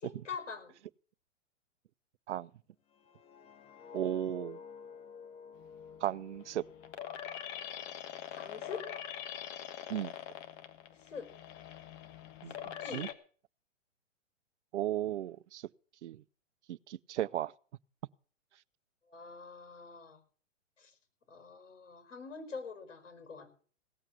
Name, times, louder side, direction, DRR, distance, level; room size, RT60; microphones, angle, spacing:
voice 1, 0.0-0.7 8.3-8.9 10.9-11.3 12.5-12.6 12.8-13.1 19.1-20.2 20.8-20.9 21.3-23.5, left 5 dB, 75° left, 5.2 m, -44 dB
sound 1, 2.9-7.9 8.3-8.6, left 6 dB, 15° left, 0.7 m, -51 dB
voice 2, 3.9-4.6 6.0-6.7 9.9-10.1 12.4-12.5 12.9-13.1 14.7-15.7 16.0-16.2 16.7-17.5, right 12 dB, 65° right, 0.6 m, -35 dB
sound 2, 5.6-13.1, left 10 dB, 35° left, 1.4 m, -44 dB
17.5 x 7.4 x 8.1 m
hypercardioid pair, 125°, 37 cm